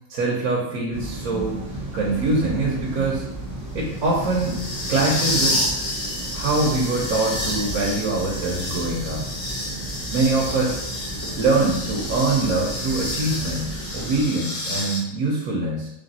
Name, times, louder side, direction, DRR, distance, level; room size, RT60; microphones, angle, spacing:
voice 1, 0.1-1.6 1.9-3.2 3.7-4.6 4.9-5.6 6.3-9.3 10.1-10.8 11.4-15.9, right 2 dB, 75° right, -3 dB, 1.2 m, -23 dB
sound 1, 0.9-14.2, right 2 dB, 15° right, 0.9 m, -34 dB
sound 2, 1.9-15.0, left 1 dB, 60° left, 1.5 m, -30 dB
3.5 x 3.3 x 4.0 m, 0.88 s
omnidirectional pair, 1.5 m